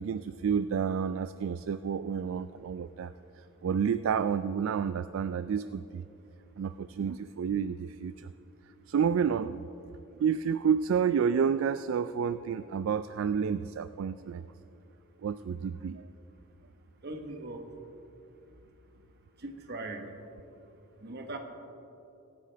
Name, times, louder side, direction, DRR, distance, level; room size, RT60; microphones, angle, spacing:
voice 1, 0.0-6.0 6.6-8.3 8.9-9.6 10.2-14.4 15.2-16.1, right 7 dB, 70° right, 12 dB, 0.3 m, -30 dB
voice 2, 17.0-17.7 19.4-20.1 21.0-21.4, right 2 dB, 55° right, 5 dB, 1.3 m, -39 dB
24.5 x 9.4 x 3.4 m, 2.9 s
head